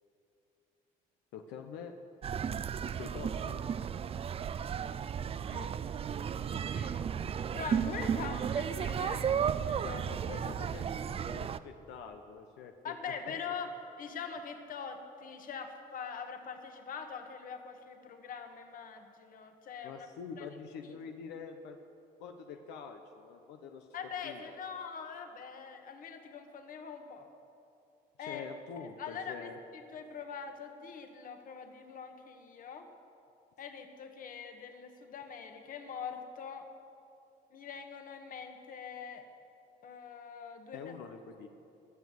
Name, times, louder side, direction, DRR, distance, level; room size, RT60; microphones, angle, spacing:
voice 1, 1.3-1.9 2.9-3.6 10.1-13.5 19.8-21.8 22.2-23.9 24.2-24.6 28.2-29.6 40.7-41.5, left 6 dB, 90° left, 5 dB, 1.0 m, -46 dB
sound 1, 2.2-11.6, right 8 dB, 35° right, 0.5 m, -34 dB
voice 2, 6.5-7.0 7.5-10.1 12.8-13.7 14.0-20.1 20.4-20.5 20.8-21.0 23.9-27.3 28.2-28.5 28.8-32.9 33.6-36.7 37.5-39.3 39.8-40.8, left 6 dB, 55° left, 6 dB, 1.6 m, -43 dB
21.0 x 7.3 x 7.9 m, 2.7 s
cardioid pair, 110°, 17 cm